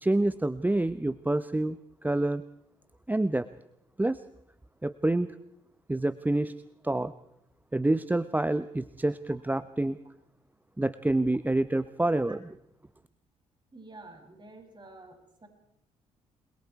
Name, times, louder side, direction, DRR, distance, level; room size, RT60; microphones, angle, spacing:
voice 1, 0.0-2.4 3.1-3.5 4.0-4.2 4.8-5.3 5.9-6.5 6.8-7.1 7.7-10.0 10.8-12.4, right 2 dB, 10° right, 15 dB, 0.9 m, -27 dB
voice 2, 13.7-15.5, right 2 dB, 30° right, 3 dB, 7.4 m, -49 dB
29.5 x 22.5 x 4.7 m, 0.77 s
hypercardioid pair, 45°, 15 cm